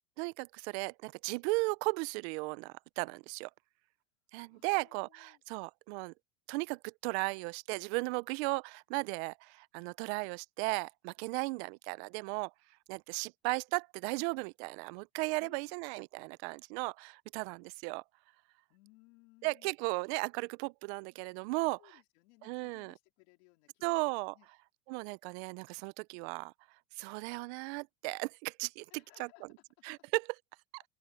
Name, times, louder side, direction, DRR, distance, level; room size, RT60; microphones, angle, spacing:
voice 1, 0.2-3.5 4.3-6.1 6.5-12.5 12.9-18.0 19.4-21.8 22.4-22.9 23.8-24.3 24.9-26.5 27.0-28.9 29.2-29.3 29.8-30.3 30.7-30.8, right 27 dB, 60° right, 0.5 m, -36 dB
voice 2, 4.5-5.4 15.4-15.8 18.7-19.7 21.8-24.5 28.9-29.6, left 26 dB, 65° left, 3.2 m, -63 dB
open air
supercardioid pair, 135°, 36 cm